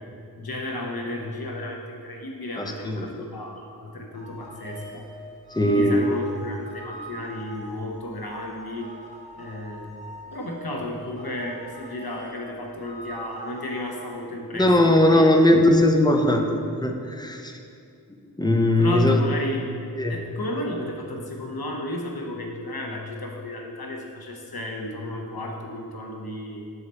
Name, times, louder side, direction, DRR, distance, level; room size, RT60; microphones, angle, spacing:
voice 1, 0.4-5.1 5.6-8.9 9.4-9.9 10.3-15.3 18.8-19.7 20.1-26.6, left 1 dB, 90° left, 0 dB, 0.9 m, -33 dB
voice 2, 2.6-3.1 5.5-6.0 14.6-17.6 18.4-19.2 20.0-20.2, left 1 dB, 10° left, 3 dB, 0.6 m, -19 dB
sound 1, 4.1-14.1, right 1 dB, 20° right, 1.5 m, -43 dB
6.5 x 4.8 x 4.2 m, 2.4 s
wide cardioid pair, 45°, 36 cm